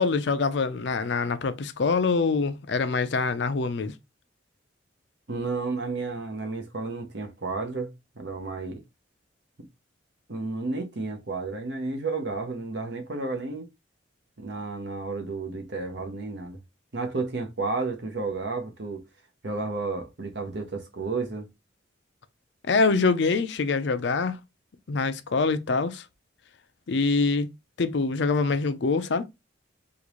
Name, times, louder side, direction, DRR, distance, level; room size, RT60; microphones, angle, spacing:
voice 1, 0.0-3.9 22.7-24.4 24.9-26.0 26.9-27.5 27.8-29.2, left 4 dB, 60° left, 0.5 m, -24 dB
voice 2, 5.3-8.8 10.3-13.7 14.4-16.6 16.9-19.0 19.4-21.5, right 3 dB, 60° right, 0.9 m, -32 dB
3.7 x 2.5 x 3.0 m
head